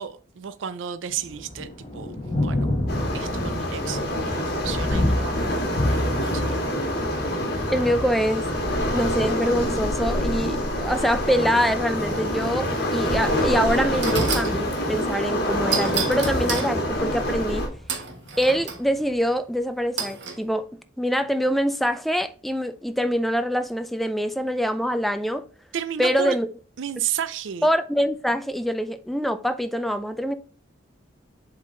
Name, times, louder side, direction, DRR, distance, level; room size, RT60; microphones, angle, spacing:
voice 1, 0.0-2.7 3.1-5.6 5.8-6.5 25.7-26.4 26.8-27.7, right 8 dB, 80° right, 0.4 m, -32 dB
Thunder, 1.1-19.1, left 1 dB, 25° left, 1.2 m, -31 dB
Waves surf, 2.9-17.7, equal, 55° left, 1.7 m, -26 dB
voice 2, 7.7-8.5 8.9-17.6 18.4-20.7 21.0-25.5 26.0-26.5 27.6-30.3, equal, ahead, 0.4 m, -24 dB
sound 1, 14.0-14.6 15.7-16.7 17.9-18.8 20.0-20.4, right 6 dB, 65° right, 1.2 m, -29 dB
7.2 x 3.9 x 3.7 m
head